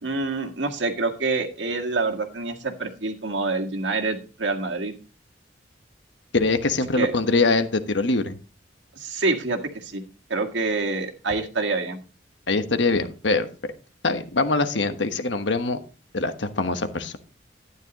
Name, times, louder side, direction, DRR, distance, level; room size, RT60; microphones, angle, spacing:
voice 1, 0.0-4.9 7.0-7.1 9.0-10.0 10.3-12.0, right 3 dB, 80° right, 4 dB, 1.9 m, -26 dB
voice 2, 6.3-8.4 12.5-13.5 14.0-15.8 16.1-17.2, left 3 dB, 80° left, 8 dB, 1.3 m, -23 dB
12.0 x 9.8 x 3.0 m, 0.33 s
head